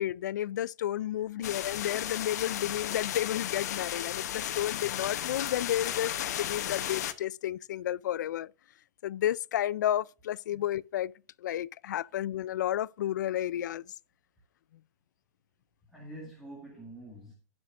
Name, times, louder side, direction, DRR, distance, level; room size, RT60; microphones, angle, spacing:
voice 1, 0.0-8.5 9.0-11.1 11.4-13.8, left 12 dB, 80° left, 0.4 m, -32 dB
voice 2, 1.2-1.5 10.5-10.6 15.9-17.3, right 1 dB, ahead, 1.8 m, -47 dB
sound 1, 1.4-7.1, left 11 dB, 60° left, 1.0 m, -34 dB
17.0 x 6.1 x 2.5 m
supercardioid pair, 170°, 10 cm